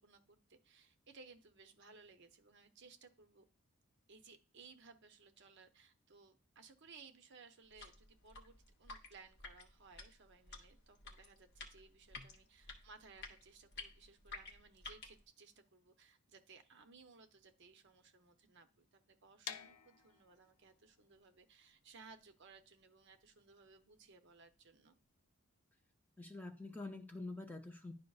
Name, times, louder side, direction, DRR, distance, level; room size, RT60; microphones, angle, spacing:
voice 1, 0.0-3.4 4.1-25.0, right 4 dB, 55° right, 7 dB, 0.6 m, -61 dB
sound 1, 7.6-15.2, left 3 dB, 50° left, 0.9 m, -53 dB
sound 2, 19.4-25.2, left 7 dB, 90° left, 0.5 m, -53 dB
voice 2, 26.2-27.9, left 2 dB, 10° left, 5 dB, 0.4 m, -47 dB
10.5 x 5.2 x 2.4 m, 0.35 s
head